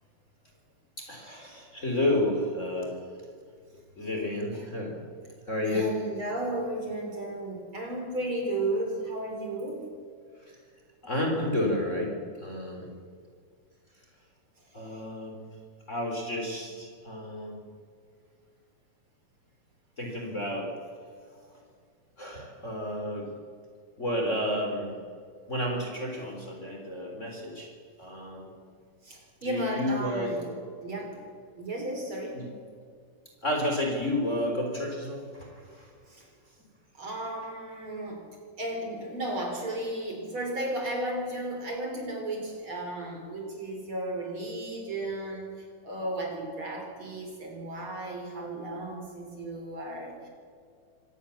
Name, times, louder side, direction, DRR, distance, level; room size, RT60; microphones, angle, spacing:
voice 1, 1.0-3.0 4.0-5.1 5.5-5.9 10.5-10.6 11.0-12.1 12.4-12.9 14.7-15.4 15.9-17.6 20.0-20.7 22.2-23.3 24.0-24.9 25.5-27.7 28.0-28.5 29.4-30.5 32.3-32.5 33.4-35.9, left 1 dB, 20° left, 1 dB, 3.9 m, -31 dB
voice 2, 5.7-9.9 14.8-15.0 29.0-30.4 30.8-31.2 31.6-32.4 36.1-36.3 36.9-38.2 38.6-50.3, right 1 dB, 40° right, 2 dB, 4.6 m, -34 dB
25.5 x 18.0 x 7.2 m, 2.1 s
omnidirectional pair, 3.8 m